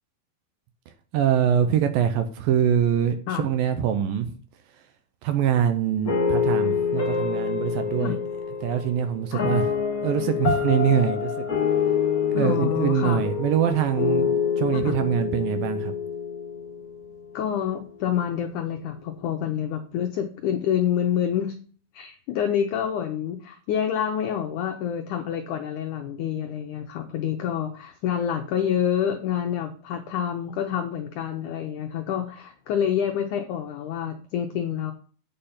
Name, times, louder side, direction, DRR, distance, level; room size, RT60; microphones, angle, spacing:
voice 1, 1.1-4.3 4.8-4.9 5.2-8.2 8.6-9.7 10.0-11.5 12.3-15.9, right 9 dB, 75° right, 2.3 m, -24 dB
sound 1, 6.0-17.2, left 7 dB, 65° left, 0.9 m, -26 dB
voice 2, 12.4-13.2 14.7-14.9 17.3-21.6 21.9-34.9, left 9 dB, 85° left, 1.7 m, -27 dB
8.7 x 5.5 x 5.6 m
omnidirectional pair, 4.6 m